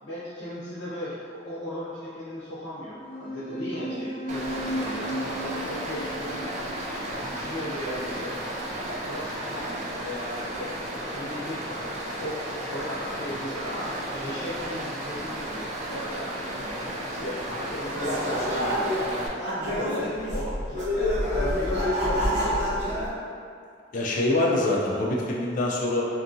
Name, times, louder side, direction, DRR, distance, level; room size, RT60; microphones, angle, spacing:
voice 1, 0.0-6.7 7.0-8.4 9.0-12.4 12.7-16.8 17.0-23.3, left 1 dB, 90° left, -11 dB, 0.6 m, -37 dB
sound 1, 3.0-7.9, equal, 20° right, 0.7 m, -36 dB
Stream, 4.3-19.3, right 1 dB, 45° right, 0.4 m, -34 dB
sound 2, 18.0-19.1 19.3-23.1, equal, 85° right, 0.9 m, -27 dB
voice 2, 23.9-26.1, left 2 dB, 45° left, -3 dB, 0.3 m, -24 dB
2.7 x 2.5 x 2.5 m, 2.4 s
head